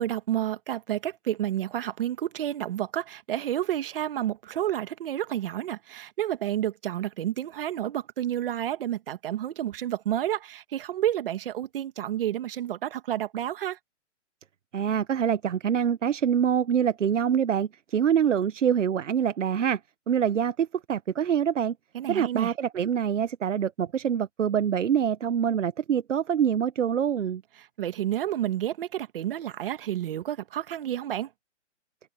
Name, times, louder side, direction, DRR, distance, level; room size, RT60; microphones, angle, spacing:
voice 1, 0.0-13.8 21.9-22.5 27.6-31.3, right 12 dB, 50° right, 2.0 m, -30 dB
voice 2, 14.7-19.8 20.1-21.7 22.1-27.4, right 8 dB, 85° right, 1.1 m, -25 dB
hypercardioid pair, 155°, 36 cm